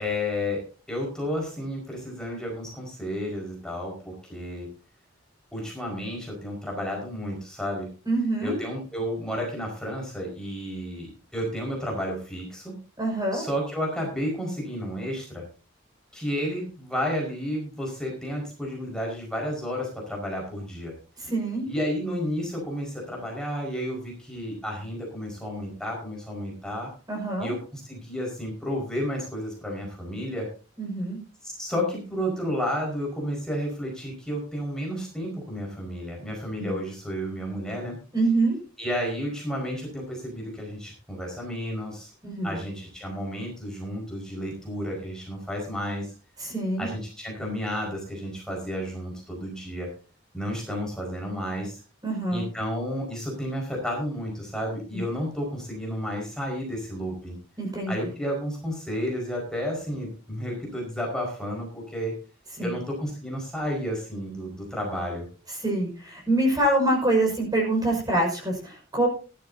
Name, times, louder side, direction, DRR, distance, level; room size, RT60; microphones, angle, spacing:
voice 1, 0.0-4.7 5.5-7.9 8.4-12.8 13.3-15.5 16.1-21.0 21.6-26.9 27.4-30.5 31.4-38.0 38.8-42.1 42.4-46.1 46.8-49.9 50.3-51.8 52.3-57.4 57.9-62.1 62.6-65.3, equal, 5° left, -1 dB, 5.1 m, -32 dB
voice 2, 8.0-8.5 13.0-13.4 21.2-21.6 27.1-27.5 30.8-31.2 36.6-36.7 38.1-38.6 42.2-42.6 46.4-46.9 52.0-52.5 57.6-57.9 62.6-62.7 65.6-69.1, right 1 dB, 20° right, 0 dB, 5.8 m, -25 dB
18.5 x 12.0 x 2.8 m, 0.34 s
head